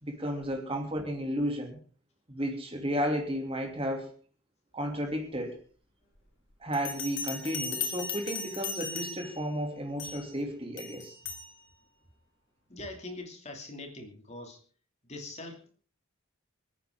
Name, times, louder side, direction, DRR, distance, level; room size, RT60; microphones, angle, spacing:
voice 1, 0.0-1.8 2.3-4.1 4.7-5.6 6.6-11.2, equal, 25° right, 3 dB, 2.9 m, -33 dB
Bell, 6.7-9.4 10.0-10.3 10.8-11.5, left 5 dB, 55° left, 2.7 m, -37 dB
voice 2, 12.7-14.6 15.1-15.7, left 2 dB, 30° left, 3 dB, 2.8 m, -42 dB
27.0 x 9.3 x 3.8 m, 0.40 s
head